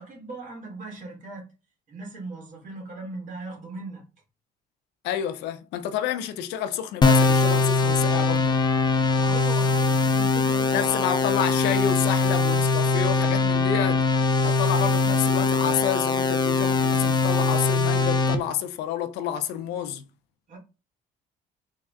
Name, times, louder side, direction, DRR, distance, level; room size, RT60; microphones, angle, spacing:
voice 1, 0.0-1.4 1.9-4.0 9.1-11.0 20.5-20.6, right 3 dB, 50° right, 1.7 m, -39 dB
voice 2, 5.0-8.6 10.7-14.0 14.4-20.0, left 9 dB, 85° left, 0.5 m, -29 dB
sound 1, 7.0-18.4, left 4 dB, 25° left, 0.5 m, -22 dB
3.5 x 2.1 x 3.5 m
cardioid pair, 110°, 17 cm